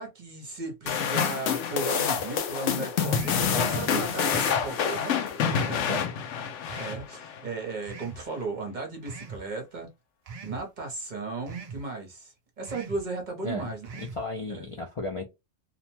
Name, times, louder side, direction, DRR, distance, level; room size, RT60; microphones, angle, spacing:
voice 1, 0.0-6.0 6.7-9.9 10.4-13.9 14.5-14.7, right 3 dB, 45° right, 0.8 m, -35 dB
sound 1, 0.9-7.4, left 7 dB, 90° left, 0.9 m, -27 dB
sound 2, 3.1-3.5 4.3-4.7 5.5-5.8 6.7-7.0 7.8-8.2 9.1-9.4 10.3-10.6 11.5-11.8 12.6-13.0 13.8-14.2, right 4 dB, 65° right, 0.3 m, -42 dB
voice 2, 3.5-3.9 5.7-6.1 13.4-13.7 14.0-15.3, left 2 dB, 60° left, 0.3 m, -34 dB
2.6 x 2.1 x 2.9 m
omnidirectional pair, 1.2 m